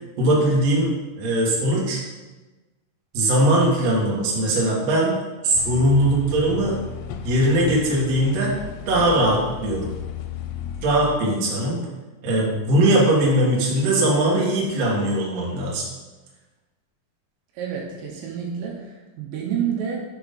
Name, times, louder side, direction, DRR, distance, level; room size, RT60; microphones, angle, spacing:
voice 1, 0.2-2.0 3.1-5.1 5.4-6.8 7.2-8.5 8.9-10.0 10.8-11.8 12.2-15.8, right 1 dB, 60° right, -4 dB, 1.8 m, -20 dB
sound 1, 5.5-11.1, left 7 dB, 85° left, 2.6 m, -34 dB
voice 2, 17.5-20.0, right 8 dB, 75° right, -2 dB, 3.0 m, -29 dB
6.5 x 4.7 x 5.2 m, 1.2 s
omnidirectional pair, 5.3 m